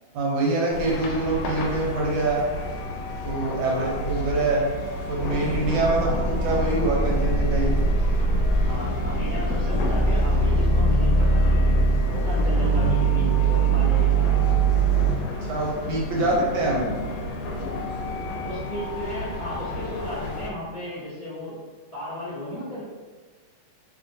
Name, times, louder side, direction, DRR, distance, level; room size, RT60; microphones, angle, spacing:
voice 1, 0.1-2.4 3.2-4.6 5.1-7.7 15.5-16.9, right 2 dB, 80° right, -3 dB, 1.5 m, -25 dB
sound 1, 0.7-20.5, left 2 dB, 80° left, 1.3 m, -33 dB
voice 2, 3.7-4.0 5.9-6.3 8.2-11.8 12.1-14.5 16.1-16.3 17.2-17.3 18.4-21.5 21.9-22.8, equal, 60° left, -11 dB, 0.4 m, -35 dB
sound 2, 5.1-15.1, right 3 dB, 40° left, 0.8 m, -22 dB
3.1 x 2.9 x 2.6 m, 1.4 s
omnidirectional pair, 2.2 m